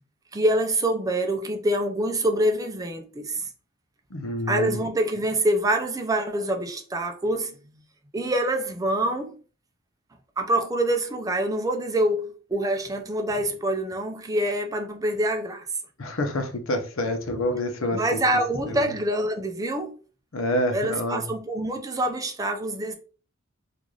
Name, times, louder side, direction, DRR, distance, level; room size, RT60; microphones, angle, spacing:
voice 1, 0.3-3.5 4.5-7.6 8.1-9.4 10.4-15.7 17.9-20.0 20.7-22.9, right 1 dB, 15° right, 0.4 m, -25 dB
voice 2, 4.1-4.8 16.0-18.2 18.7-18.9 20.3-21.3, left 1 dB, 80° left, 0.7 m, -27 dB
3.8 x 2.5 x 3.1 m
head